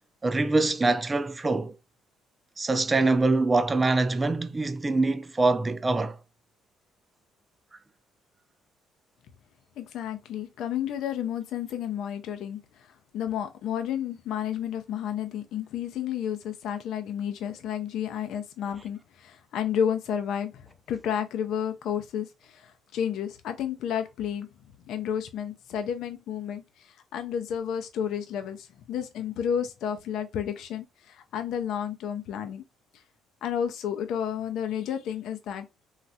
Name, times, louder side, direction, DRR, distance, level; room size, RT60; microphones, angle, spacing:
voice 1, 0.2-1.7 2.6-6.2, right 3 dB, 20° right, 0.4 m, -24 dB
voice 2, 9.8-24.5 24.9-32.6 33.4-35.7, left 9 dB, 70° left, 0.5 m, -31 dB
3.2 x 2.4 x 2.6 m
cardioid pair, 95°, 0 cm